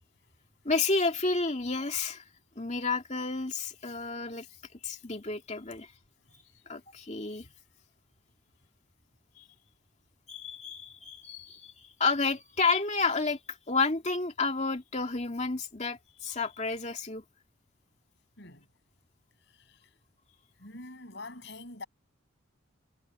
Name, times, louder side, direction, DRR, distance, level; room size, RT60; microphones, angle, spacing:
voice 1, 0.6-2.2 2.6-4.5 4.8-5.9 6.7-7.5 9.4-9.5 10.3-17.2, left 4 dB, 35° left, 2.4 m, -31 dB
voice 2, 20.6-21.8, left 2 dB, 55° left, 7.1 m, -44 dB
head